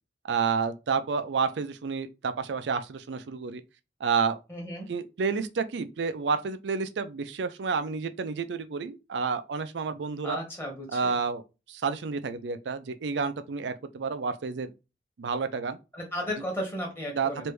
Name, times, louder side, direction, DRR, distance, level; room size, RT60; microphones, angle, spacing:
voice 1, 0.3-3.6 4.0-4.4 4.9-10.4 10.9-11.4 11.7-14.7 15.2-15.8 17.1-17.5, right 5 dB, 80° right, 0.4 m, -30 dB
voice 2, 4.5-4.9 10.2-11.2 15.9-17.5, equal, 15° left, 1.3 m, -34 dB
3.3 x 2.6 x 3.1 m
head